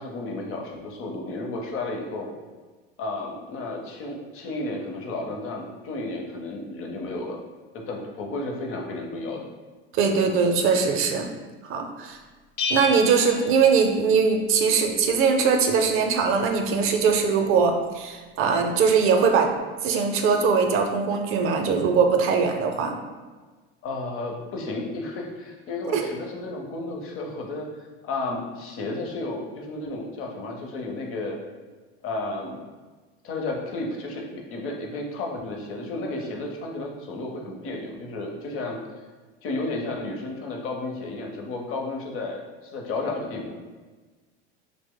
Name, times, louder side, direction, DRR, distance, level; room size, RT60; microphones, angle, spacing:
voice 1, 0.0-2.3 3.0-7.4 7.7-9.4 23.8-31.4 32.0-32.6 33.2-38.8 39.4-43.6, left 2 dB, 45° left, 1 dB, 0.7 m, -32 dB
voice 2, 9.9-11.3 11.6-12.2 12.7-19.5 19.8-23.0 25.9-26.0, right 5 dB, 45° right, 4 dB, 0.4 m, -21 dB
Bell, 12.6-14.4, left 2 dB, 80° left, 0.6 m, -31 dB
2.8 x 2.1 x 3.6 m, 1.3 s
supercardioid pair, 105°, 31 cm